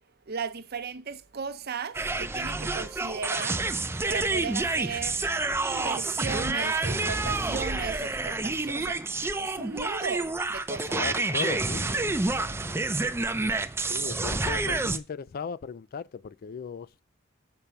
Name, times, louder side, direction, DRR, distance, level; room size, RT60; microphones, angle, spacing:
voice 1, 0.3-3.7 4.1-5.2 5.6-9.0 9.4-11.0, right 5 dB, 55° right, 0.8 m, -36 dB
sound 1, 1.9-15.0, right 3 dB, 15° right, 0.5 m, -29 dB
voice 2, 10.9-12.8 13.9-17.0, left 6 dB, 50° left, 0.3 m, -38 dB
6.9 x 5.1 x 5.7 m
head